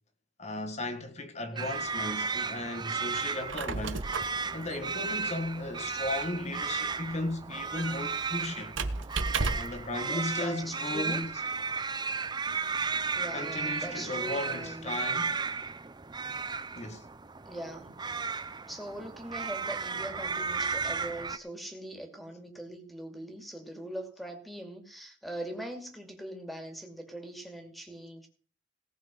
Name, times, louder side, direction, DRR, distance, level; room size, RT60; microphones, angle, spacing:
voice 1, 0.4-4.0 4.5-8.8 9.5-11.3 13.3-15.4 16.8-17.1, left 2 dB, 35° left, 1.8 m, -36 dB
sound 1, 1.6-21.4, right 5 dB, 20° right, 0.6 m, -34 dB
Squeak, 3.3-9.9, right 3 dB, 70° right, 1.2 m, -36 dB
voice 2, 10.0-11.3 13.1-15.0 17.4-18.0 18.6-28.3, right 1 dB, ahead, 2.4 m, -41 dB
18.0 x 6.4 x 5.4 m
head